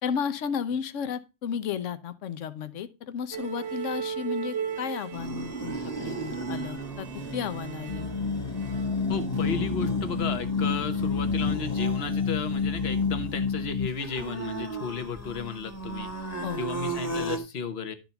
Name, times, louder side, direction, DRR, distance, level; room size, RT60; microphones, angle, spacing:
voice 1, 0.0-7.1 7.3-8.0 16.4-16.6, left 7 dB, 75° left, 1.2 m, -33 dB
sound 1, 3.3-9.7 10.0-10.3, right 7 dB, 70° right, 1.1 m, -38 dB
sound 2, 5.1-17.4, right 3 dB, 15° left, 1.3 m, -36 dB
sound 3, 7.9-13.9, left 5 dB, 30° left, 1.0 m, -29 dB
voice 2, 9.1-16.1 16.6-17.9, left 5 dB, 55° left, 1.3 m, -34 dB
12.0 x 4.0 x 5.7 m
omnidirectional pair, 1.3 m